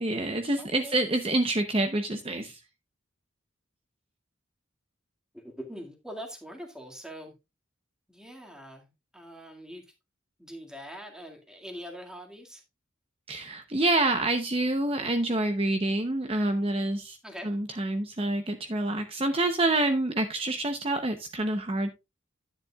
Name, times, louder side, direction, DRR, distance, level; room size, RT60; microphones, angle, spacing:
voice 1, 0.0-2.6 13.3-17.2 17.4-21.9, right 2 dB, 30° right, 0.7 m, -27 dB
voice 2, 0.6-1.0 5.3-7.3 8.1-9.8 10.4-12.6 17.2-17.6, equal, 5° right, 1.9 m, -43 dB
10.5 x 9.9 x 2.3 m
head